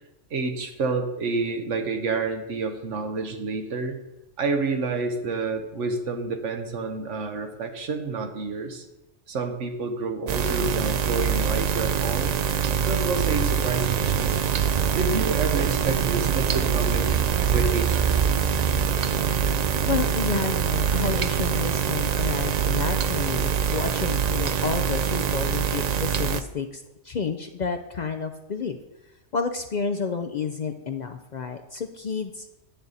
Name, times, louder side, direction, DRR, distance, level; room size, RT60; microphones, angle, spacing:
voice 1, 0.3-4.0 4.4-8.8 9.3-12.3 12.8-14.4 14.9-18.3, right 4 dB, 90° right, 6 dB, 1.3 m, -29 dB
sound 1, 10.3-26.4, right 7 dB, 65° right, 0.4 m, -24 dB
voice 2, 19.9-28.8 29.3-32.6, left 5 dB, 55° left, 7 dB, 0.5 m, -30 dB
10.0 x 7.8 x 4.1 m, 0.96 s
omnidirectional pair, 1.2 m